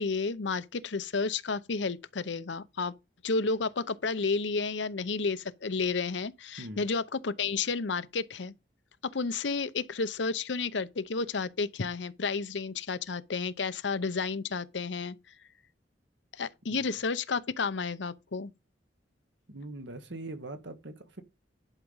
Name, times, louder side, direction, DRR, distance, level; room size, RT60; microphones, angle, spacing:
voice 1, 0.0-2.9 3.2-8.5 9.1-15.2 16.3-18.5, left 4 dB, 75° left, 0.7 m, -31 dB
voice 2, 19.5-21.2, right 2 dB, 75° right, 1.5 m, -42 dB
11.0 x 4.9 x 5.5 m
head